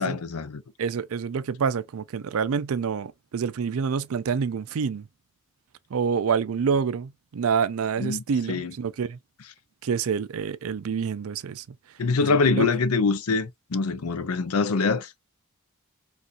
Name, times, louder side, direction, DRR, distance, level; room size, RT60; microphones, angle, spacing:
voice 1, 0.0-0.6 8.0-8.7 12.0-15.1, left 4 dB, 85° left, 0.6 m, -24 dB
voice 2, 0.8-5.1 5.9-9.2 9.8-11.6 12.3-12.7, right 6 dB, 75° right, 0.4 m, -27 dB
4.1 x 2.5 x 2.4 m
head